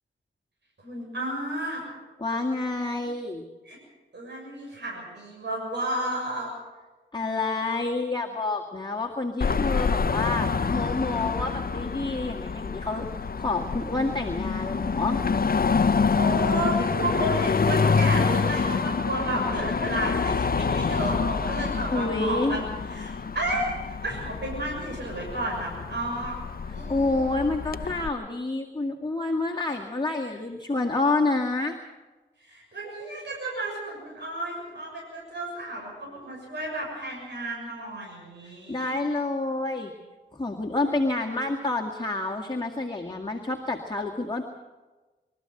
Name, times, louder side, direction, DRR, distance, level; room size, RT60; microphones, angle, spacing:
voice 1, 0.8-1.8 3.7-3.8 4.1-6.5 16.1-26.4 26.7-27.5 32.4-38.9, right 1 dB, 65° right, -3 dB, 7.1 m, -32 dB
voice 2, 2.2-3.5 7.1-15.2 21.9-22.6 26.9-31.8 38.4-39.9 40.3-44.4, left 2 dB, 25° left, 0 dB, 2.0 m, -28 dB
Car passing by / Traffic noise roadway noise / Engine, 9.4-28.1, left 5 dB, 50° left, 0.8 m, -27 dB
24.5 x 13.5 x 7.9 m, 1.2 s
cardioid pair, 60°, 20 cm